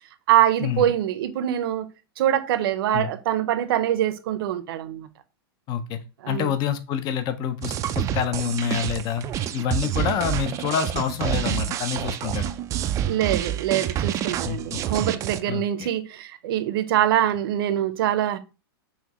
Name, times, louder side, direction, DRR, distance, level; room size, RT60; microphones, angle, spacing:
voice 1, 0.3-1.9 2.2-5.1 6.2-6.5 13.1-18.4, right 11 dB, 65° right, 0.7 m, -24 dB
voice 2, 5.7-6.0 6.3-9.2 9.5-12.5 14.4-14.8 15.5-15.9, left 8 dB, 30° left, 0.5 m, -27 dB
sound 1, 7.6-15.4, right 11 dB, 25° right, 0.3 m, -28 dB
5.7 x 2.7 x 3.0 m
hypercardioid pair, 130°, 13 cm